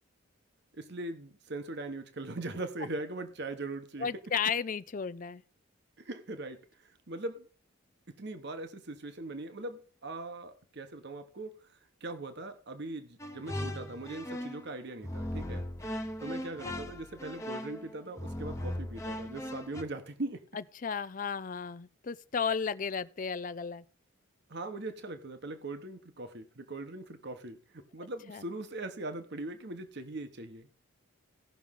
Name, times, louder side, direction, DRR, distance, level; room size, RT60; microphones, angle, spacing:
voice 1, 0.7-4.1 6.0-7.5 8.1-15.6 16.2-20.4 24.5-30.7, right 2 dB, 55° right, 1.1 m, -40 dB
voice 2, 4.0-5.4 16.6-16.8 20.5-23.8 28.3-28.4, left 6 dB, 40° left, 0.4 m, -34 dB
sound 1, 13.2-14.7 15.0-19.8, left 1 dB, 15° left, 0.9 m, -38 dB
17.0 x 6.1 x 3.7 m
head